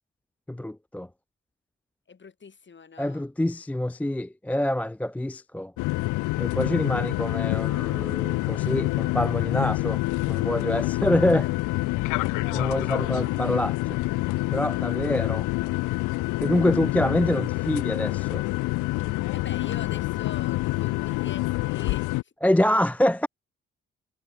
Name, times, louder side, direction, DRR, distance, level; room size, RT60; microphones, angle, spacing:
voice 1, 0.5-1.1 3.0-5.7 6.4-10.0 10.3-11.5 12.5-14.0 14.5-15.5 16.4-18.4 22.4-23.3, left 1 dB, 5° left, 0.4 m, -26 dB
voice 2, 2.1-3.3 19.3-22.3, left 5 dB, 35° left, 1.9 m, -43 dB
sound 1, 5.8-22.2, left 21 dB, 75° left, 0.7 m, -27 dB
hypercardioid pair, 45°, 32 cm